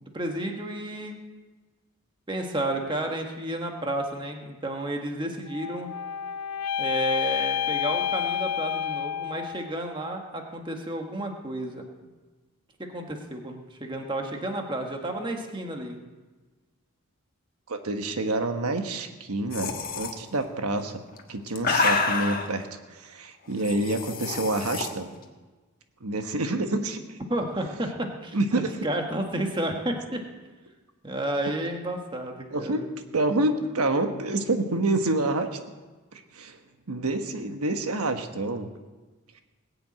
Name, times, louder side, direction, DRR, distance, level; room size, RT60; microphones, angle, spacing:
voice 1, 0.1-1.2 2.3-5.9 6.8-11.8 12.9-16.0 27.3-30.2 31.0-32.8, right 1 dB, 20° right, 3 dB, 1.5 m, -31 dB
sound 1, 5.5-9.8, left 9 dB, 90° left, 0.4 m, -29 dB
voice 2, 17.7-21.0 21.3-25.1 26.0-27.2 28.3-28.7 32.5-32.8 33.1-35.5 36.1-36.6 36.9-38.7, right 2 dB, 80° right, 6 dB, 1.2 m, -27 dB
sound 2, 19.5-20.1 21.1-22.5 23.6-24.9, left 4 dB, 40° left, 1.4 m, -27 dB
19.5 x 7.1 x 8.7 m, 1.3 s
head